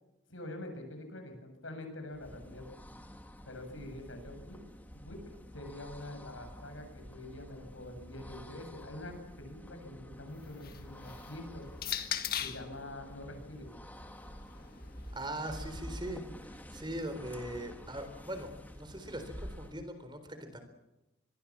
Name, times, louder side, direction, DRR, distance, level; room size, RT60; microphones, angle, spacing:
voice 1, 0.3-2.6 3.5-4.6 4.9-11.7 12.4-13.7, left 1 dB, 80° left, 6 dB, 7.7 m, -45 dB
sound 1, 2.0-19.9, equal, 10° left, 2.1 m, -49 dB
sound 2, 10.3-12.7 13.7-15.8, left 9 dB, 45° left, 1.8 m, -41 dB
voice 2, 15.1-16.2 16.7-20.6, right 1 dB, 25° right, 8 dB, 4.0 m, -40 dB
26.0 x 23.0 x 7.5 m, 0.96 s
head